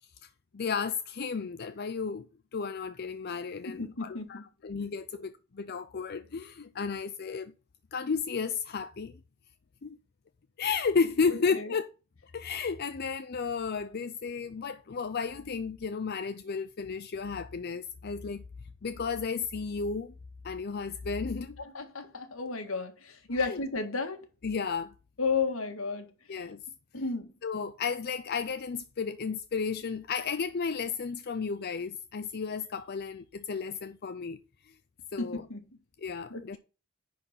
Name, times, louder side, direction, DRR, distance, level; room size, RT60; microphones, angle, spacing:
voice 1, 0.5-2.3 2.5-7.5 7.9-9.1 9.8-10.0 10.6-11.9 12.3-18.4 18.8-20.1 20.4-21.6 23.4-23.6 24.4-24.9 26.3-26.6 27.4-34.4 35.1-35.4 36.0-36.6, left 5 dB, 50° left, 0.5 m, -33 dB
voice 2, 3.7-4.4 5.2-5.3 11.3-11.7 21.6-24.2 25.2-26.1 26.9-27.3 35.2-35.6 36.3-36.6, left 4 dB, 75° left, 1.8 m, -33 dB
10.5 x 4.3 x 5.7 m
head